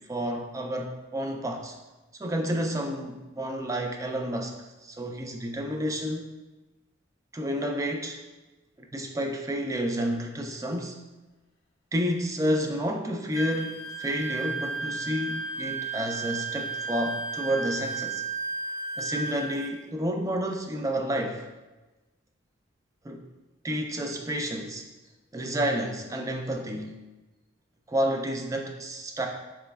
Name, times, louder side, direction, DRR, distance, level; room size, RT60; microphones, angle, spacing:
voice 1, 0.1-1.8 2.2-4.5 4.8-6.2 7.3-8.2 8.8-11.0 11.9-18.2 19.0-21.5 23.0-23.2 23.6-24.9 25.3-27.0 27.9-29.3, equal, 15° right, 3 dB, 0.3 m, -30 dB
Wind instrument woodwind instrument, 13.3-19.6, right 3 dB, 55° left, 0.5 m, -33 dB
3.9 x 3.1 x 2.3 m, 1.1 s
head